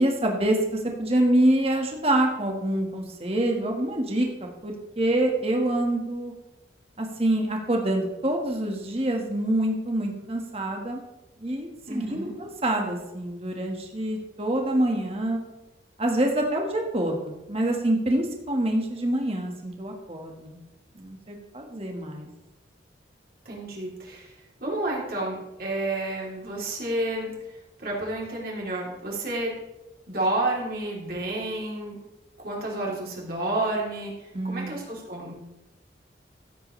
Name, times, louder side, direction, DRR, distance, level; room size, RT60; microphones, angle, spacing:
voice 1, 0.0-4.3 4.6-6.3 7.0-11.0 11.4-15.4 16.0-20.6 21.0-22.3 34.3-34.8, right 1 dB, 30° right, 1 dB, 1.6 m, -26 dB
voice 2, 11.8-12.4 23.4-24.3 24.6-27.3 27.8-29.5 30.1-32.0 32.4-35.4, right 2 dB, 50° right, -3 dB, 3.3 m, -30 dB
15.5 x 8.1 x 3.3 m, 0.98 s
head